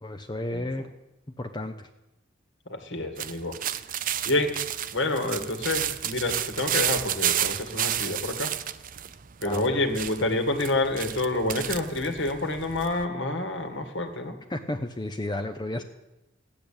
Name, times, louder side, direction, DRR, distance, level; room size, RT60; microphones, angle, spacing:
voice 1, 0.0-0.9 1.4-1.9 9.4-9.8 14.5-15.8, left 1 dB, 20° left, 6 dB, 0.7 m, -32 dB
voice 2, 2.7-3.6 4.3-4.6 4.9-8.5 9.4-14.4 15.8-15.9, left 2 dB, 60° left, 6 dB, 2.1 m, -28 dB
sound 1, 3.2-13.1, right 10 dB, 40° right, 0.6 m, -31 dB
15.5 x 10.0 x 8.7 m, 0.96 s
head